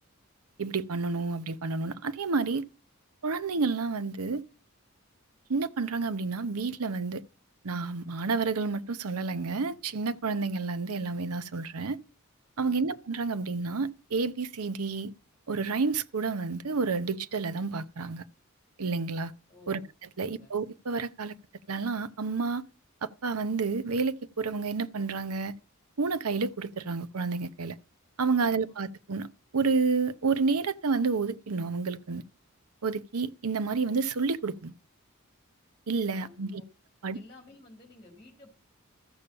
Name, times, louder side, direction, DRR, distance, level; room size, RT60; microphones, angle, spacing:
voice 1, 0.6-2.7 3.2-4.4 5.5-7.2 7.6-12.0 12.6-15.1 15.5-18.2 18.8-19.3 19.7-19.8 20.2-21.3 21.7-22.7 23.0-25.5 26.0-27.8 28.2-32.2 32.8-34.7 35.9-36.6 37.0-37.2, right 4 dB, 85° right, 0.7 m, -30 dB
voice 2, 12.6-13.0 19.5-19.9 20.2-20.5 28.4-28.8 36.1-36.4 37.1-38.6, left 2 dB, 25° left, 2.3 m, -53 dB
13.5 x 6.9 x 5.6 m
head